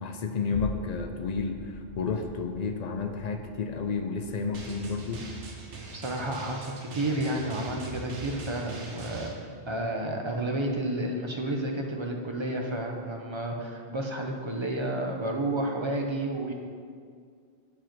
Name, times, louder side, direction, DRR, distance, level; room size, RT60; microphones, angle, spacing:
voice 1, 0.0-5.2, left 4 dB, 55° left, 5 dB, 0.5 m, -31 dB
sound 1, 0.5-9.1 9.5-9.6, left 4 dB, 80° left, 1.0 m, -45 dB
Drum, 4.5-9.3, right 3 dB, 80° right, 1.2 m, -41 dB
voice 2, 5.9-9.3 9.7-16.5, right 1 dB, 35° right, 2 dB, 0.5 m, -31 dB
7.2 x 4.9 x 4.5 m, 2.1 s
omnidirectional pair, 1.2 m